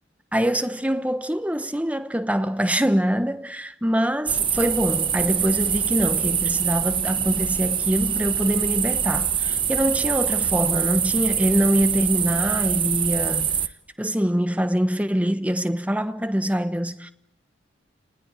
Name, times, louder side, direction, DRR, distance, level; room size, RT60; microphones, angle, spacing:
voice 1, 0.3-13.5 14.0-17.1, equal, 5° right, 1.2 m, -24 dB
sound 1, 4.3-13.7, right 8 dB, 25° right, 1.1 m, -24 dB
29.5 x 20.0 x 9.1 m
head